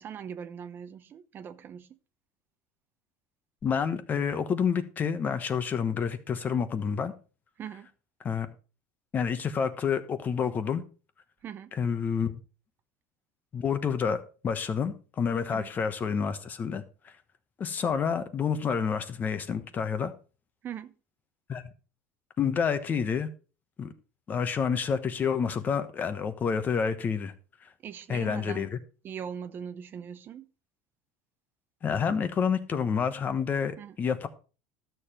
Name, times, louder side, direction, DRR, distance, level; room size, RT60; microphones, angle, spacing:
voice 1, 0.0-2.0 7.6-7.9 11.4-11.7 15.5-15.7 20.6-20.9 27.8-28.8 29.0-30.5 33.8-34.0, right 8 dB, 35° right, 0.7 m, -41 dB
voice 2, 3.6-7.1 8.2-8.5 9.1-10.8 11.7-12.3 13.5-17.1 17.6-20.1 21.5-21.7 22.4-23.3 23.8-23.9 24.3-27.3 28.1-28.8 31.8-34.3, left 6 dB, 30° left, 1.1 m, -29 dB
12.0 x 6.9 x 4.3 m
supercardioid pair, 130°, 6 cm